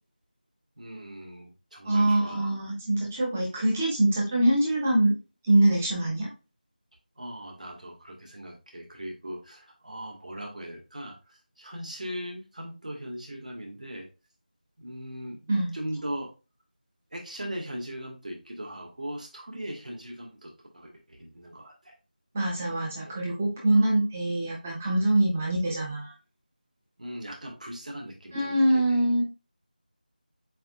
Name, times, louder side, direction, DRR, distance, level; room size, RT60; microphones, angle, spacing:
voice 1, 0.8-2.5 7.2-14.1 14.8-15.5 15.7-16.3 17.1-22.0 23.7-23.9 27.0-29.1, equal, 55° right, 0 dB, 1.8 m, -39 dB
voice 2, 1.8-5.1 5.4-6.3 15.5-15.7 22.3-26.1 28.3-29.2, right 1 dB, 10° right, -3 dB, 0.8 m, -24 dB
7.7 x 2.9 x 2.4 m, 0.30 s
figure-of-eight pair, 175°, 5 cm